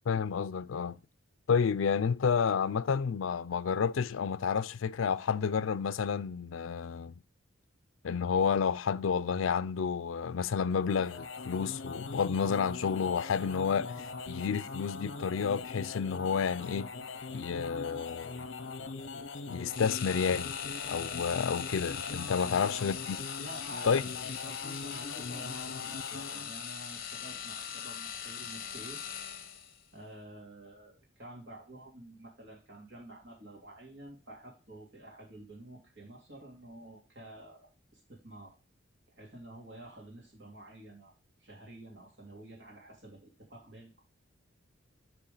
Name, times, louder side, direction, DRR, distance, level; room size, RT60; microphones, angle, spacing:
voice 1, 0.1-1.0 1.5-7.1 8.0-16.9 17.3-18.4 19.5-20.5 20.9-23.2 23.8-24.0, left 6 dB, 80° left, 0.4 m, -30 dB
sound 1, 10.7-26.5, left 4 dB, 65° left, 0.8 m, -41 dB
sound 2, 19.7-29.8, left 8 dB, 50° left, 1.1 m, -40 dB
voice 2, 22.3-22.8 23.4-24.0 24.5-29.0 29.9-38.5 39.2-41.1 41.4-44.0, right 1 dB, 60° right, 3.2 m, -49 dB
8.8 x 4.8 x 3.9 m
head